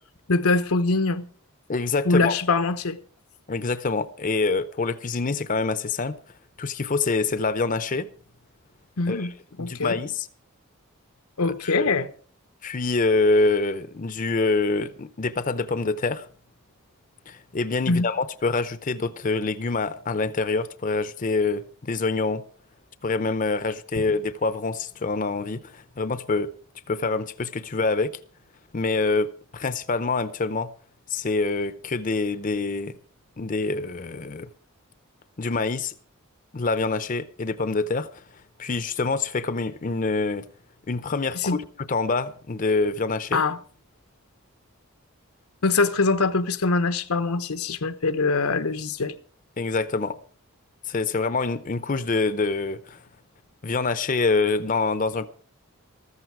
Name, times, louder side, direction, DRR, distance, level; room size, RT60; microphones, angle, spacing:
voice 1, 0.3-1.2 2.0-3.0 9.0-9.3 9.6-10.0 11.4-12.1 17.9-18.1 41.3-41.6 43.3-43.6 45.6-49.1, left 3 dB, 90° left, 1.0 m, -23 dB
voice 2, 1.7-2.4 3.5-6.1 6.6-8.1 9.1-9.3 9.6-10.3 11.4-12.0 12.6-16.3 17.3-22.4 23.0-26.5 26.9-28.1 28.7-30.7 31.1-32.9 33.4-34.5 35.4-35.9 36.5-38.2 38.6-40.5 40.9-41.6 41.9-43.4 49.6-50.2 50.8-53.0 53.6-55.3, left 3 dB, 35° left, 0.6 m, -26 dB
14.0 x 14.0 x 4.7 m
head